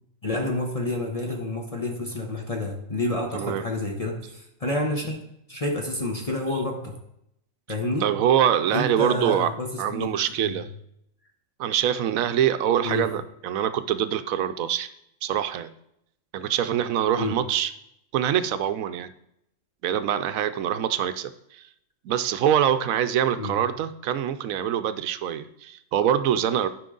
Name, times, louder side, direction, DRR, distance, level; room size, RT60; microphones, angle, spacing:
voice 1, 0.2-5.2 5.5-7.0 7.7-8.1 8.7-10.5 12.8-13.1 17.2-17.4 23.4-23.6, left 2 dB, 30° left, 1 dB, 1.0 m, -29 dB
voice 2, 8.0-9.5 9.8-10.7 11.6-14.9 15.2-15.7 16.3-17.7 18.1-19.1 19.8-21.6 22.0-26.7, right 10 dB, 90° right, 12 dB, 1.0 m, -24 dB
13.0 x 5.3 x 3.8 m, 0.78 s
omnidirectional pair, 1.4 m